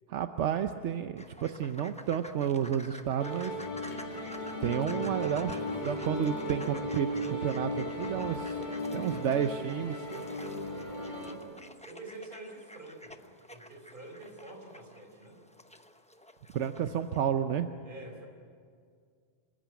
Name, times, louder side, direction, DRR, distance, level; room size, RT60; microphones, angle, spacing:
voice 1, 0.1-3.6 4.6-8.6 8.9-10.0 16.5-17.7, right 8 dB, 85° right, 8 dB, 1.1 m, -31 dB
sound 1, 1.2-17.2, left 1 dB, 5° left, 0.8 m, -51 dB
sound 2, 3.2-11.4, left 1 dB, 40° left, 2.5 m, -36 dB
voice 2, 10.6-11.4 11.8-15.4 17.8-18.3, right 2 dB, 45° right, 2 dB, 4.5 m, -48 dB
27.0 x 15.0 x 9.4 m, 2.1 s
omnidirectional pair, 1.2 m